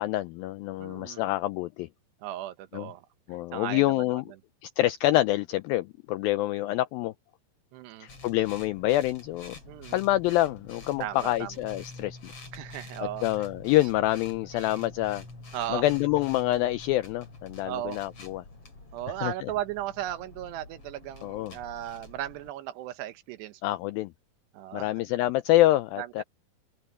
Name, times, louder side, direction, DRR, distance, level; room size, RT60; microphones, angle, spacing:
voice 1, 0.0-1.9 2.7-2.9 3.3-4.3 4.6-7.1 8.0-9.6 9.9-12.3 13.0-15.2 15.7-18.4 19.2-19.5 21.2-21.5 23.6-24.1 24.7-26.2, left 16 dB, 85° left, 2.1 m, -26 dB
voice 2, 0.8-1.2 2.2-3.1 3.5-4.4 7.7-8.1 9.6-10.0 11.0-11.5 12.5-13.5 14.5-14.8 15.5-15.9 17.6-18.0 18.9-23.7 24.5-25.0 26.0-26.2, right 13 dB, 85° right, 3.2 m, -36 dB
sound 1, 8.1-22.5, left 3 dB, 35° left, 6.7 m, -47 dB
open air
omnidirectional pair, 4.7 m